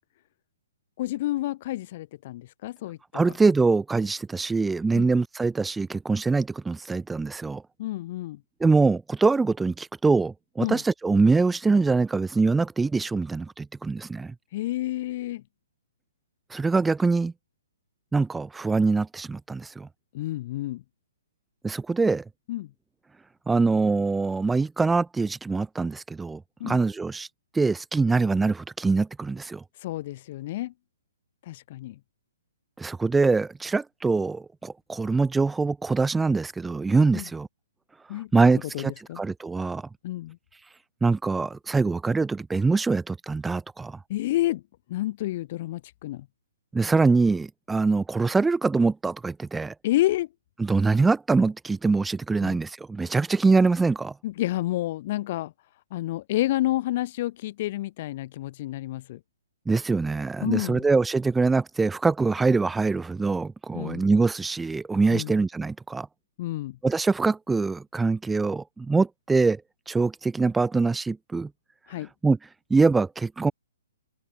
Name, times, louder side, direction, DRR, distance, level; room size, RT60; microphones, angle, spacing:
voice 1, 1.0-3.3 4.9-5.1 7.8-8.4 10.6-10.8 14.5-15.4 20.1-20.8 22.5-22.7 26.6-26.8 29.8-30.7 31.5-32.0 37.1-37.3 38.1-39.2 40.0-40.4 44.1-44.6 44.9-46.3 49.8-50.3 52.4-52.6 54.2-55.5 55.9-59.2 60.4-60.9 63.7-64.0 65.1-65.3 66.4-66.8 71.9-72.1, left 15 dB, 40° left, 4.5 m, -29 dB
voice 2, 3.1-7.6 8.6-14.3 16.5-17.3 18.1-19.9 21.6-22.2 23.5-27.3 27.5-29.6 32.8-37.5 38.1-39.9 41.0-44.0 46.7-49.7 50.6-54.1 59.7-66.1 66.8-69.6 69.9-71.5 72.2-72.4 72.7-73.5, right 4 dB, 5° right, 2.0 m, -24 dB
hypercardioid pair, 150°, 0 cm